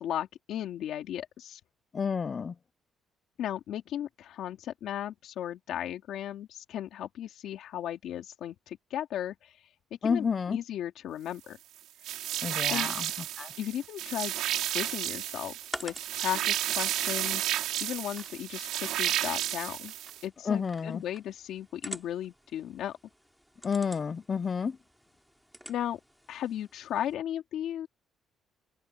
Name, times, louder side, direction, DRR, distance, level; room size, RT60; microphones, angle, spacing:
voice 1, 0.0-1.6 3.4-9.6 10.0-11.6 12.7-12.9 13.6-14.3 14.7-15.5 15.8-19.9 20.2-23.0 25.7-26.0 26.3-27.9, left 11 dB, 60° left, 2.6 m, -36 dB
voice 2, 1.9-2.5 10.0-10.6 12.4-13.1 13.4-13.5 20.5-21.0 23.6-24.8, left 6 dB, 25° left, 0.6 m, -30 dB
sound 1, 12.0-20.2, right 13 dB, 80° right, 3.0 m, -32 dB
sound 2, 14.6-27.1, equal, ahead, 3.2 m, -49 dB
cardioid pair, 175°, 0 cm